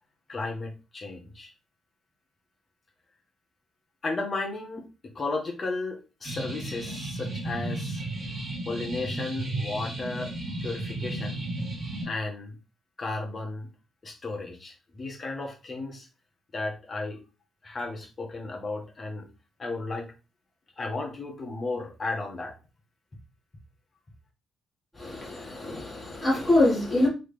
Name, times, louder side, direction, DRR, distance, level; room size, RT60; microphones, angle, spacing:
voice 1, 0.3-1.5 4.0-8.0 8.6-10.3 10.6-11.4 12.0-12.5 13.0-13.7 14.0-16.1 16.5-17.2 17.6-19.3 19.6-20.1 20.8-22.5, left 3 dB, 35° left, 1.4 m, -34 dB
sound 1, 6.2-12.0, right 2 dB, 40° right, 2.0 m, -33 dB
voice 2, 25.0-27.1, left 2 dB, 10° left, 2.0 m, -24 dB
3.8 x 3.2 x 3.3 m
cardioid pair, 90°, 0 cm